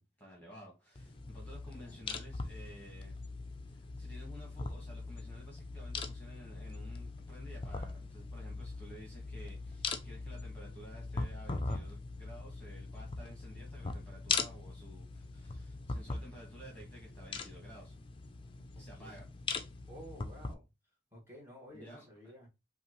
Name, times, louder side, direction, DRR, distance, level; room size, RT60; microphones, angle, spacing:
voice 1, 0.0-3.2 3.7-17.9 18.7-19.3 21.7-22.0, equal, 10° left, 1.4 m, -53 dB
sound 1, 1.0-20.5, left 4 dB, 30° left, 0.5 m, -41 dB
voice 2, 1.7-2.0 18.9-19.3 19.9-20.7 21.1-22.5, equal, 15° right, 1.7 m, -53 dB
5.6 x 2.5 x 3.0 m
head